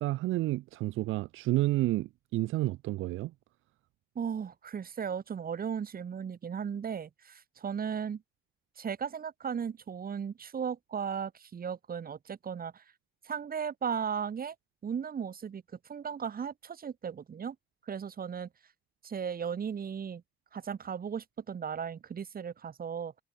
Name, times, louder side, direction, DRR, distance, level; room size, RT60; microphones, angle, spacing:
voice 1, 0.0-3.3, right 17 dB, 90° right, 1.0 m, -30 dB
voice 2, 4.2-8.2 8.8-12.8 13.2-14.6 14.8-17.6 17.9-18.5 19.0-20.2 20.5-23.1, right 7 dB, 45° right, 3.5 m, -36 dB
cardioid pair, 90°, 20 cm